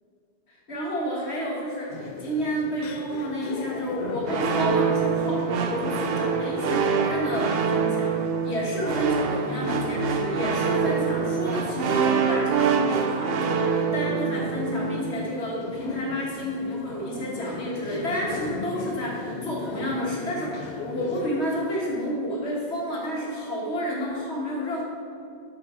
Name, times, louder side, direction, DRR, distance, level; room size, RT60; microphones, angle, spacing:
voice 1, 0.7-8.1 8.4-13.6 13.9-24.8, equal, 75° left, -4 dB, 1.9 m, -30 dB
sound 1, 1.9-21.3, left 4 dB, 50° left, 0.5 m, -37 dB
sound 2, 4.3-15.2, right 6 dB, 65° right, 0.8 m, -25 dB
7.3 x 6.1 x 4.4 m, 2.5 s
omnidirectional pair, 1.1 m